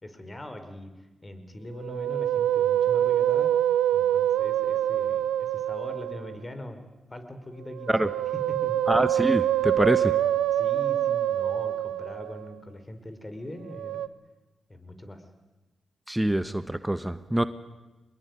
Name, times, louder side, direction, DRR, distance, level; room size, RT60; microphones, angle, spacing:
voice 1, 0.0-0.9 1.2-3.5 3.9-8.2 8.5-8.8 10.5-14.1 14.7-15.2, left 1 dB, 30° left, 8 dB, 5.0 m, -41 dB
Musical instrument, 1.8-6.4 7.7-12.5 13.7-14.1, right 11 dB, 85° right, 0.8 m, -25 dB
voice 2, 8.9-10.1 16.1-17.4, right 1 dB, 10° right, 12 dB, 1.3 m, -25 dB
25.0 x 21.5 x 9.8 m, 1.1 s
supercardioid pair, 40°, 0 cm